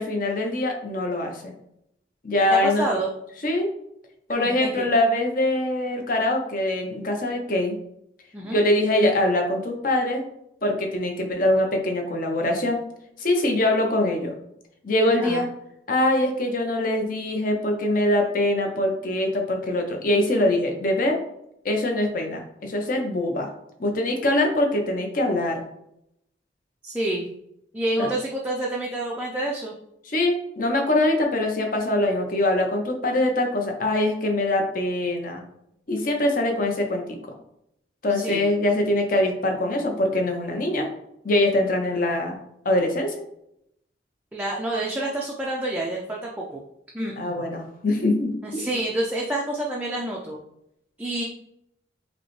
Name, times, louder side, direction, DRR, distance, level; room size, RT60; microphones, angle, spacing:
voice 1, 0.0-1.5 2.2-2.8 3.4-3.7 4.3-7.8 8.5-10.2 10.6-12.8 13.2-14.3 14.8-15.5 15.9-21.2 21.6-23.5 23.8-25.6 28.0-28.1 30.1-35.4 35.9-37.2 38.0-40.9 41.2-42.4 42.6-43.1 47.2-48.7, left 1 dB, 45° left, 3 dB, 0.7 m, -23 dB
voice 2, 2.6-3.1 4.4-4.9 8.3-8.6 15.2-15.5 26.8-27.3 27.7-29.7 38.1-38.5 44.3-46.6 46.9-47.4 48.4-50.4 51.0-51.2, right 1 dB, 10° right, -3 dB, 0.4 m, -28 dB
5.1 x 2.1 x 3.1 m, 0.78 s
head